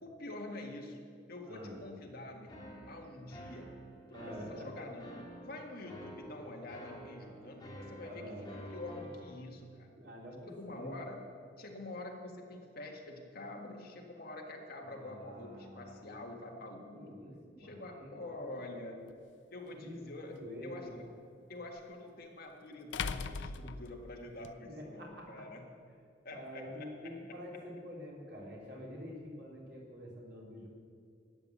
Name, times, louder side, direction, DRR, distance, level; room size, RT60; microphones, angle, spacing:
voice 1, 0.0-1.0 1.3-3.8 4.1-8.3 8.7-9.9 10.5-11.2 11.6-17.2 17.6-19.1 19.5-20.4 20.6-20.9 21.5-25.7 26.2-26.9, left 2 dB, 55° left, 1 dB, 1.8 m, -46 dB
voice 2, 1.5-1.8 4.1-4.8 8.0-8.6 9.9-11.0 14.9-15.9 16.9-18.3 19.8-19.9 20.3-21.0 24.6-25.4 26.3-30.7, equal, 65° right, -2 dB, 3.4 m, -47 dB
sound 1, 2.5-9.3, right 1 dB, 25° left, 2.2 m, -50 dB
sound 2, 19.1-19.2 21.8-21.9 22.9-24.5, left 5 dB, 75° left, 0.5 m, -39 dB
12.5 x 8.9 x 7.5 m, 2.3 s
head